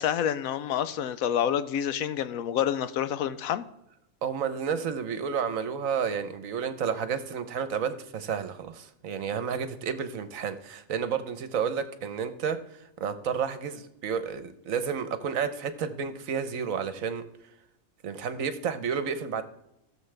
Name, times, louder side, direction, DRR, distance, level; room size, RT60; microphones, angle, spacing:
voice 1, 0.0-3.6, left 9 dB, 80° left, 1.0 m, -28 dB
voice 2, 4.2-17.2 18.0-19.4, right 7 dB, 70° right, 1.2 m, -31 dB
16.5 x 7.1 x 3.3 m
omnidirectional pair, 1.5 m